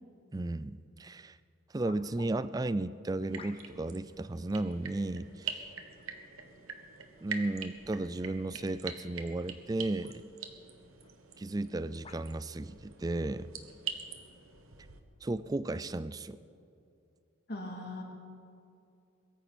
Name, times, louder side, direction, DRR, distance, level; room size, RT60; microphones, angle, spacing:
voice 1, 0.3-1.4 1.7-5.7 7.2-10.2 11.4-13.5 15.2-16.4, right 2 dB, 20° right, 15 dB, 0.3 m, -34 dB
sound 1, 0.9-1.0 1.8-2.3 3.3-3.9 4.7-5.0 6.0-6.4 7.2-7.3 9.2-9.4 10.0-10.2 11.0-11.1 12.0-12.3 13.1-13.3, left 5 dB, 25° left, 0.7 m, -54 dB
sound 2, 3.2-15.0, right 6 dB, 90° right, 1.3 m, -45 dB
voice 2, 17.5-18.0, left 1 dB, 50° left, -1 dB, 2.9 m, -39 dB
22.0 x 14.5 x 4.3 m, 2.6 s
head